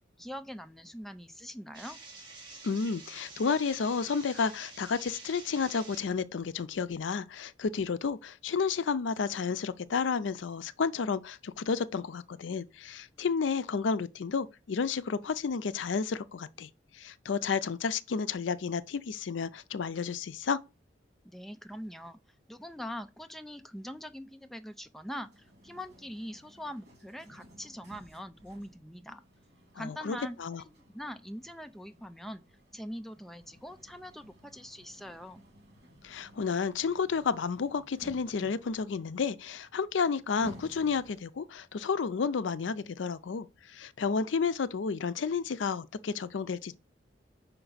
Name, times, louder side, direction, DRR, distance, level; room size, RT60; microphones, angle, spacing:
voice 1, 0.2-2.0 21.2-22.2 22.5-29.2 29.7-32.4 32.7-35.4, equal, ahead, 0.4 m, -43 dB
sound 1, 1.7-6.1, right 3 dB, 25° right, 1.8 m, -48 dB
voice 2, 2.6-20.6 29.8-30.6 36.0-46.7, left 5 dB, 85° left, 0.5 m, -31 dB
sound 2, 25.1-41.5, equal, 60° right, 2.2 m, -55 dB
5.7 x 4.5 x 4.0 m
head